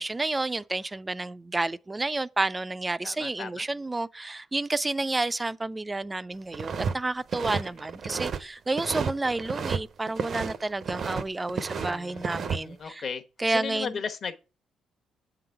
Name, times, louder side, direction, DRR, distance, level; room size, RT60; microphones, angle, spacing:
voice 1, 0.0-13.0 13.4-13.9, right 2 dB, 20° right, 0.4 m, -30 dB
voice 2, 3.0-3.7 7.6-7.8 11.7-14.4, left 6 dB, 55° left, 1.0 m, -37 dB
sound 1, 6.5-6.9 7.2-8.4 8.7-9.8 10.1-11.2 11.5-12.6, right 6 dB, 55° right, 0.6 m, -31 dB
7.6 x 3.9 x 5.7 m
cardioid pair, 90°, 0 cm